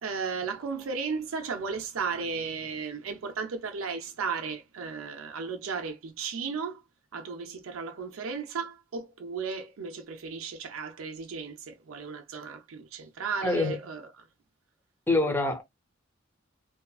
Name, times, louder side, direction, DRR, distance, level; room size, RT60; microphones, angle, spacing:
voice 1, 0.0-6.8 7.1-14.3, right 5 dB, 90° right, 0.5 m, -35 dB
voice 2, 13.4-13.8 15.1-15.6, left 2 dB, 10° left, 0.6 m, -25 dB
2.7 x 2.4 x 2.2 m
head